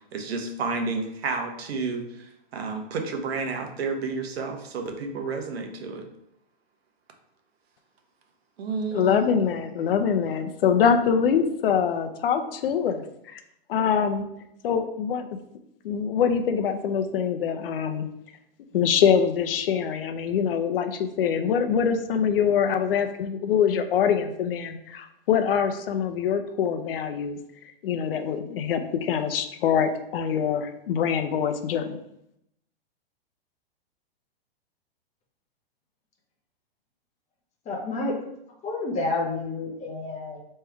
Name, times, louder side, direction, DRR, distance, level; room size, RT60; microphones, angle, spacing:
voice 1, 0.1-6.1 8.6-9.2, right 4 dB, 80° right, 4 dB, 1.0 m, -31 dB
voice 2, 8.9-13.0 13.3-13.4 13.7-14.3 14.6-15.2 15.8-18.1 18.7-27.4 27.8-32.0, left 7 dB, 65° left, 7 dB, 0.7 m, -24 dB
voice 3, 37.7-38.2 38.6-40.4, left 2 dB, 20° left, 0 dB, 1.0 m, -29 dB
3.5 x 3.2 x 4.5 m, 0.78 s
hypercardioid pair, 135°, 30 cm